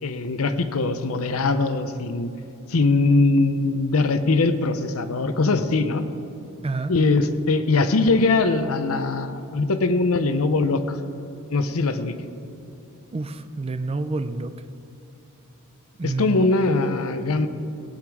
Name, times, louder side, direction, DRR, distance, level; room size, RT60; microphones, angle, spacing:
voice 1, 0.0-2.3 2.7-6.1 6.9-11.0 11.5-12.2 16.0-17.5, left 3 dB, 65° left, 10 dB, 0.7 m, -21 dB
voice 2, 13.1-14.5 16.0-16.5, right 3 dB, 25° right, 11 dB, 0.4 m, -28 dB
16.5 x 8.8 x 4.8 m, 2.7 s
head